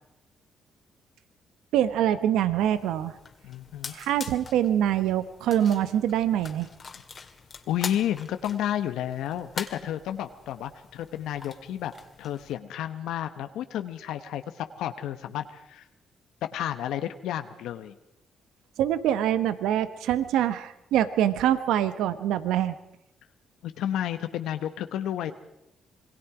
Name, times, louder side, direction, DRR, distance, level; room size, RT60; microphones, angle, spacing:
voice 1, 1.7-3.1 3.9-6.7 18.8-22.7, right 11 dB, 85° right, 13 dB, 0.9 m, -24 dB
sound 1, 2.6-12.6, left 5 dB, 40° left, 2.2 m, -44 dB
voice 2, 3.4-3.9 7.7-11.9 12.2-15.8 16.5-17.9 23.6-25.3, left 11 dB, 85° left, 9 dB, 0.9 m, -31 dB
26.5 x 21.0 x 4.9 m, 0.83 s
cardioid pair, 75°, 0 cm